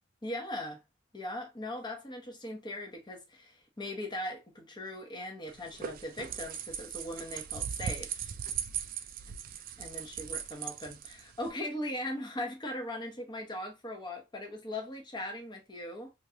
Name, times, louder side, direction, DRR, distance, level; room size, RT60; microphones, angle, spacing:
voice 1, 0.2-0.8 1.1-8.3 9.8-16.1, left 1 dB, 25° left, 0.9 m, -39 dB
sound 1, 5.5-11.5, right 8 dB, 45° right, 0.4 m, -39 dB
3.1 x 2.5 x 2.7 m
head